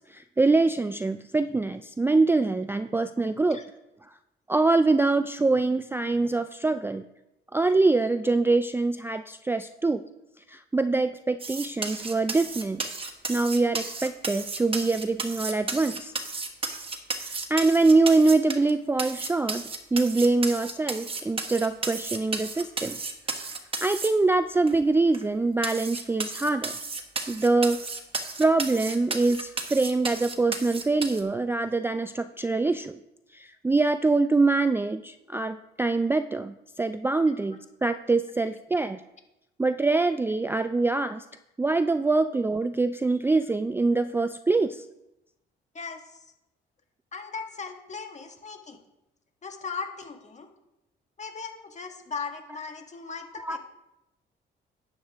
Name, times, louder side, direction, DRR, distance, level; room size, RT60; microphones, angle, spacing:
voice 1, 0.1-3.6 4.5-7.0 7.5-10.0 10.5-12.8 13.3-16.1 17.5-19.6 19.9-23.0 23.8-26.7 27.3-27.8 28.4-33.0 33.3-39.0 39.6-41.2 41.6-44.8 53.4-53.6, right 3 dB, 10° right, 10 dB, 0.3 m, -24 dB
sound 1, 11.4-18.7 19.0-24.1 24.7-24.8 25.1-25.2 25.6-31.2, right 3 dB, 25° right, 1.4 m, -33 dB
voice 2, 45.7-46.2 47.1-48.8 49.4-50.5 51.2-53.6, left 5 dB, 35° left, 5 dB, 1.6 m, -38 dB
11.0 x 8.2 x 3.5 m, 0.91 s
cardioid pair, 90°, 20 cm